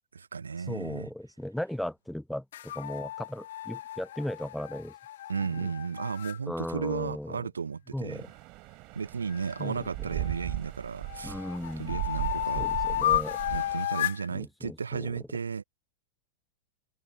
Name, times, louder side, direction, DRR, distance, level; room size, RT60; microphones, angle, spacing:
voice 1, 0.1-1.1 5.3-8.2 8.9-11.5 11.8-12.7 13.5-15.6, right 5 dB, 75° right, 0.7 m, -34 dB
voice 2, 0.7-4.9 5.6-5.7 6.5-7.4 7.9-8.3 9.6-9.9 11.2-12.0 12.6-13.4 14.3-15.1, left 1 dB, ahead, 0.9 m, -36 dB
sound 1, 2.5-6.4 9.3-10.6 11.1-14.3, left 12 dB, 60° left, 0.6 m, -33 dB
sound 2, 8.1-13.9, right 25 dB, 40° right, 3.7 m, -38 dB
figure-of-eight pair, 90°, 0 cm